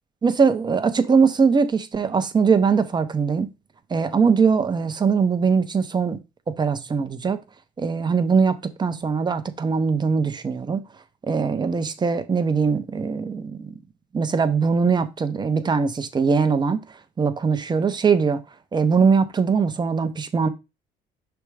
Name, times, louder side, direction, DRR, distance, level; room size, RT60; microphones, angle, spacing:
voice 1, 0.2-3.5 3.9-6.2 6.5-7.4 7.8-10.8 11.3-13.7 14.1-16.8 17.2-18.4 18.7-20.5, right 5 dB, 25° right, 0.8 m, -21 dB
5.8 x 3.5 x 4.8 m
cardioid pair, 110°, 17 cm